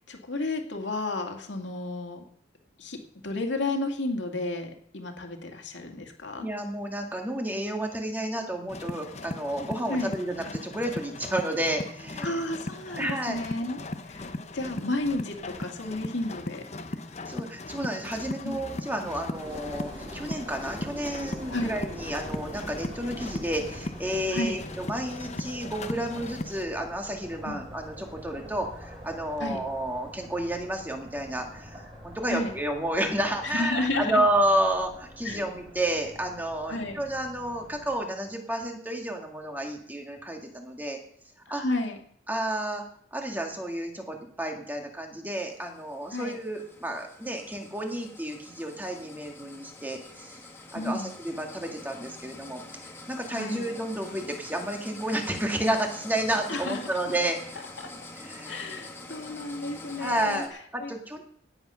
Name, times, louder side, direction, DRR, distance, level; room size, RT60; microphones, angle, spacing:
voice 1, 0.1-2.2 2.8-3.0 3.2-6.5 9.9-10.1 12.2-13.8 14.1-14.2 14.5-16.6 18.4-18.5 21.5-21.7 24.3-24.6 27.4-27.6 29.4-29.6 32.3-32.5 33.4-34.2 35.2-35.4 36.7-37.0 41.5-42.0 46.1-46.4 50.7-51.1 53.3-53.7 56.5-56.8 57.8-57.9 58.5-60.4 60.8-60.9, left 2 dB, 70° left, 3 dB, 2.2 m, -32 dB
voice 2, 6.4-12.4 13.0-13.4 17.2-41.0 41.5-41.6 42.3-42.8 43.1-50.4 50.7-57.7 58.2-58.7 60.0-61.2, right 1 dB, 10° right, 2 dB, 2.0 m, -31 dB
sound 1, 8.7-26.6, left 2 dB, 35° left, 0.9 m, -38 dB
sound 2, 19.3-37.9, equal, 30° right, 7.3 m, -45 dB
sound 3, 45.4-60.5, left 2 dB, 15° left, 1.4 m, -46 dB
17.5 x 8.1 x 5.7 m, 0.65 s
head